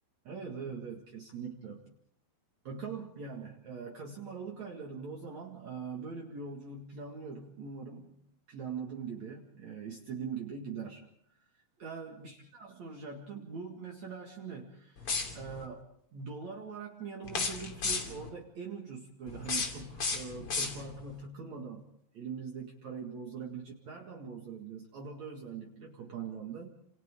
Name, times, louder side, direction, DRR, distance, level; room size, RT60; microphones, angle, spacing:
voice 1, 0.2-1.8 2.6-8.2 8.5-11.0 11.3-15.8 16.1-26.7, right 5 dB, 50° right, -1 dB, 3.0 m, -42 dB
sound 1, 15.0-15.7 17.2-18.3 19.3-21.1, left 4 dB, 40° left, 3.4 m, -34 dB
29.0 x 28.5 x 3.8 m, 0.71 s
omnidirectional pair, 4.5 m